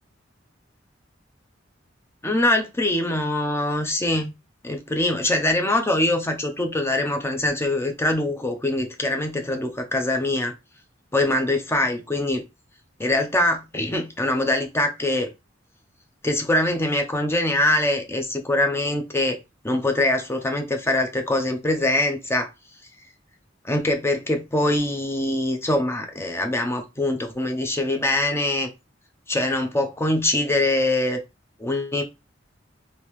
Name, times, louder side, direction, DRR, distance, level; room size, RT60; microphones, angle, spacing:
voice 1, 2.2-4.3 4.6-10.5 11.1-12.4 13.0-15.3 16.2-19.4 19.6-22.5 23.6-28.7 29.3-31.2 31.6-32.0, left 1 dB, 15° left, 4 dB, 0.6 m, -23 dB
3.5 x 2.7 x 3.0 m, 0.24 s
head